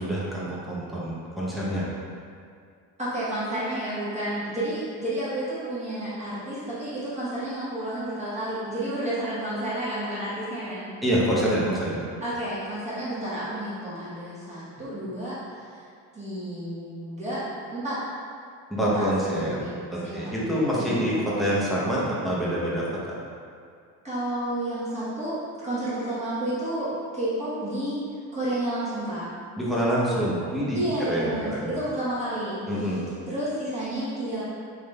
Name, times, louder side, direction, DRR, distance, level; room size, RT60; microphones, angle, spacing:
voice 1, 0.0-1.8 11.0-12.0 18.7-19.6 19.9-22.9 29.6-30.8 31.1-31.7 32.7-33.0, equal, ahead, -7 dB, 0.9 m, -26 dB
voice 2, 3.0-10.9 12.2-15.8 16.1-17.4 17.7-18.0 18.8-21.1 24.0-25.4 25.6-28.0 28.3-29.3 30.7-33.0 33.3-34.4, right 1 dB, 20° right, -11 dB, 1.1 m, -31 dB
3.7 x 2.5 x 3.3 m, 2.3 s
cardioid pair, 105°, 35 cm